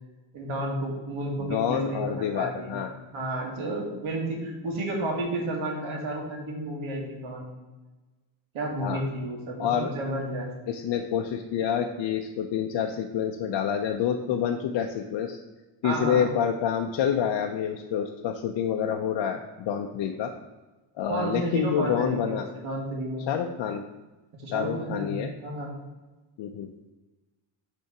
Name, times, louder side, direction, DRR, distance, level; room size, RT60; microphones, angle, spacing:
voice 1, 0.3-2.8 3.1-7.5 8.5-10.5 15.8-16.3 21.1-23.3 24.4-25.7, right 1 dB, 85° right, 0 dB, 1.8 m, -31 dB
voice 2, 1.5-2.9 8.8-9.0 9.6-9.9 10.7-15.4 15.8-20.3 21.0-22.5 23.3-23.9 24.5-25.3 26.4-26.7, left 8 dB, 60° left, 4 dB, 0.6 m, -28 dB
5.5 x 3.5 x 5.8 m, 1.2 s
cardioid pair, 105°, 47 cm